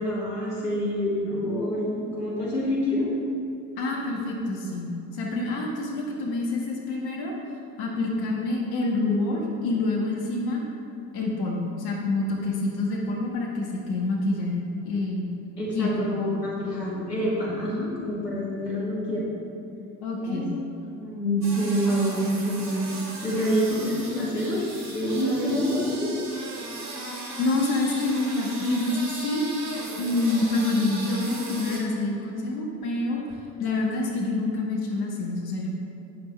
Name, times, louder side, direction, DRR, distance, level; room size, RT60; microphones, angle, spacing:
voice 1, 0.0-3.1 15.6-19.4 20.2-20.6 21.0-24.6 24.9-26.1, equal, 85° left, -5 dB, 2.0 m, -27 dB
voice 2, 3.8-7.3 7.8-10.6 11.1-15.3 15.7-15.9 20.0-20.5 27.4-29.5 30.0-33.2 33.6-35.7, left 2 dB, 50° left, -2 dB, 1.8 m, -27 dB
sound 1, 21.4-31.8, right 2 dB, 35° right, 2.4 m, -37 dB
12.0 x 8.6 x 3.3 m, 2.8 s
figure-of-eight pair, 60°, 48 cm